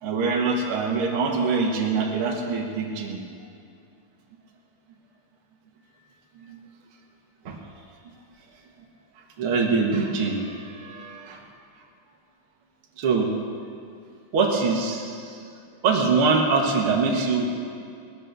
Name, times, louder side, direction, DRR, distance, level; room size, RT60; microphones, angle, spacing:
voice 1, 0.0-3.2 6.4-6.6 7.5-7.6 9.4-11.4 13.0-13.6 14.3-15.4 15.8-17.5, right 4 dB, 45° right, -1 dB, 1.9 m, -24 dB
19.5 x 9.9 x 6.9 m, 2.3 s
omnidirectional pair, 4.3 m